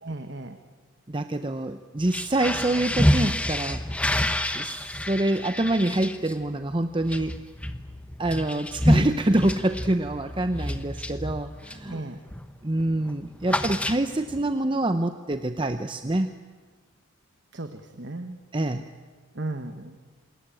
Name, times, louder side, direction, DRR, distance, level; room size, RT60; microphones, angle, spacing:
voice 1, 0.0-0.6 11.9-12.2 17.5-18.4 19.3-20.0, right 2 dB, 55° right, 7 dB, 1.2 m, -35 dB
voice 2, 1.1-3.8 4.5-7.4 8.2-12.0 12.6-16.3 18.5-18.8, right 1 dB, 25° right, 8 dB, 0.7 m, -26 dB
sound 1, 2.0-11.9 12.3-12.6 12.8-14.4, left 1 dB, 5° left, 1.0 m, -28 dB
27.0 x 20.5 x 8.9 m, 1.4 s
head